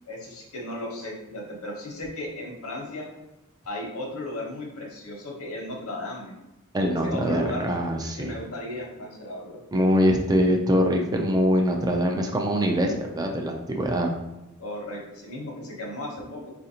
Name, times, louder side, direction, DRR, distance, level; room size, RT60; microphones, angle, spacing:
voice 1, 0.0-3.1 3.6-6.3 7.0-7.7 8.2-9.6 14.6-16.5, left 1 dB, 70° left, -1 dB, 0.9 m, -35 dB
voice 2, 6.7-8.3 9.7-14.1, equal, 15° right, 2 dB, 0.3 m, -23 dB
4.1 x 2.5 x 2.8 m, 0.97 s
head